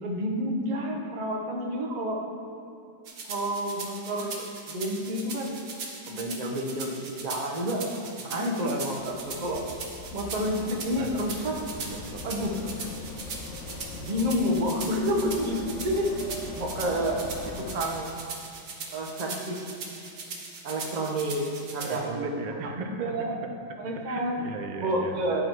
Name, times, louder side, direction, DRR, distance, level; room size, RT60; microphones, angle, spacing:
voice 1, 0.0-2.2 3.3-5.6 6.1-9.6 10.1-11.5 12.2-12.6 14.0-16.1 16.5-17.2 17.7-18.1 18.9-19.7 20.6-23.3 23.8-24.4 24.8-25.4, equal, 40° right, 0 dB, 0.6 m, -29 dB
sound 1, 3.0-22.0, right 4 dB, 60° right, 1.3 m, -40 dB
sound 2, 8.9-17.8, left 4 dB, 65° left, 0.7 m, -41 dB
voice 2, 10.9-12.3 12.7-12.8 17.4-17.6 21.8-23.3 23.7-23.8 24.0-25.2, right 4 dB, 85° right, 4 dB, 1.4 m, -38 dB
10.5 x 4.0 x 4.5 m, 2.8 s
omnidirectional pair, 1.9 m